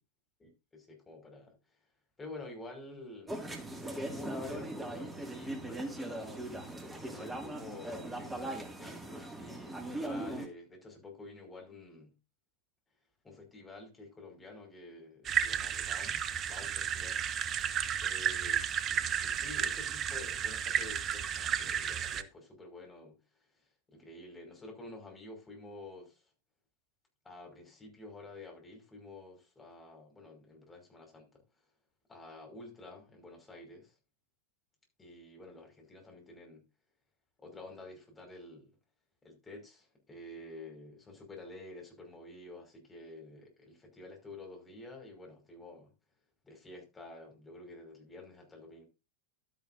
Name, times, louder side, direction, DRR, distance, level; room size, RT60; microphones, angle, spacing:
voice 1, 0.4-1.6 2.2-3.4 4.0-6.8 7.1-12.1 13.2-17.2 18.0-18.6 18.9-23.2 23.5-26.2 27.2-31.3 32.1-33.9 35.0-36.6 37.4-38.7 39.2-45.9 46.4-48.8, left 2 dB, 15° left, 5.5 m, -49 dB
sound 1, 3.3-10.5, right 1 dB, 10° right, 2.2 m, -40 dB
sound 2, 15.2-22.2, right 8 dB, 30° right, 0.8 m, -33 dB
12.0 x 10.5 x 2.7 m
figure-of-eight pair, 90°, 0 cm